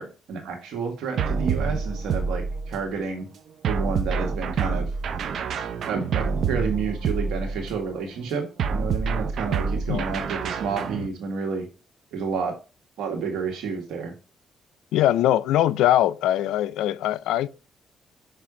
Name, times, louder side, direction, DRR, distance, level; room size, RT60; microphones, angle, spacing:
voice 1, 0.0-3.3 3.6-4.9 5.9-11.7 12.1-12.6 13.0-14.1, right 5 dB, 80° right, 1.8 m, -30 dB
sound 1, 1.2-2.9 3.6-7.8 8.6-11.1, right 5 dB, 65° right, 0.6 m, -27 dB
voice 2, 14.9-17.5, left 13 dB, 90° left, 0.3 m, -21 dB
6.1 x 3.3 x 4.9 m
cardioid pair, 90°, 0 cm